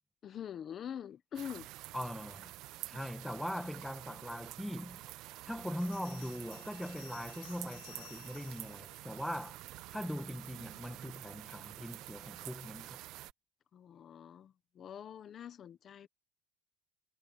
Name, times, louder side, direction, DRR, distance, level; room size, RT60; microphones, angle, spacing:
voice 1, 0.2-1.7 13.7-16.1, left 9 dB, 30° left, 1.3 m, -45 dB
sound 1, 1.3-13.3, right 17 dB, 50° right, 0.6 m, -48 dB
voice 2, 1.9-2.5 2.9-5.0 5.5-9.6 9.9-13.0, equal, ahead, 1.3 m, -41 dB
Bell, 5.8-9.7, left 27 dB, 85° left, 3.1 m, -57 dB
cardioid pair, 150°, 0 cm